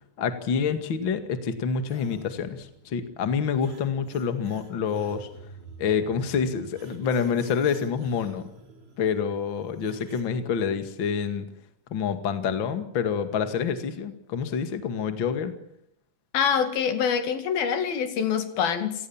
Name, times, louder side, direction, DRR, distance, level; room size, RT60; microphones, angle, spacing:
voice 1, 0.2-5.3 5.8-8.5 9.0-11.5 11.9-15.5, left 6 dB, 40° left, 9 dB, 2.4 m, -27 dB
sound 1, 1.9-10.2, right 3 dB, 45° right, 5.4 m, -49 dB
voice 2, 16.3-18.9, left 7 dB, 80° left, 9 dB, 4.2 m, -25 dB
29.5 x 18.5 x 7.3 m, 0.74 s
omnidirectional pair, 4.2 m